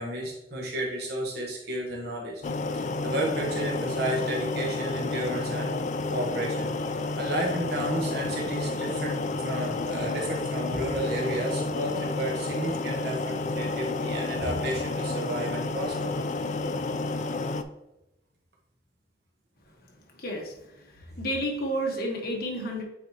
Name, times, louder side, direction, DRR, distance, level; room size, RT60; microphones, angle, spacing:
voice 1, 0.0-2.4 2.7-5.8 6.1-16.1, right 1 dB, 65° right, -2 dB, 1.3 m, -32 dB
sound 1, 2.4-17.6, left 3 dB, 45° left, 0.4 m, -30 dB
voice 2, 20.2-22.8, equal, 60° left, 1 dB, 1.4 m, -31 dB
8.8 x 4.0 x 2.9 m, 0.91 s
head